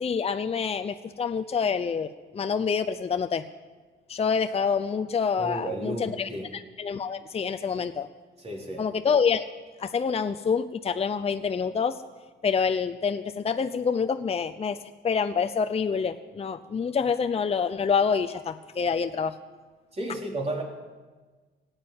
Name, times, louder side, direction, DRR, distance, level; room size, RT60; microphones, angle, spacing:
voice 1, 0.0-2.1 2.3-3.4 4.1-6.3 6.8-8.1 8.8-9.4 9.8-12.0 12.4-14.8 15.0-19.3, left 6 dB, 30° left, 8 dB, 0.7 m, -27 dB
voice 2, 5.4-6.5 8.4-8.9 19.9-20.6, right 1 dB, 30° right, 0 dB, 3.8 m, -33 dB
16.5 x 9.0 x 8.7 m, 1.3 s
cardioid pair, 90°, 20 cm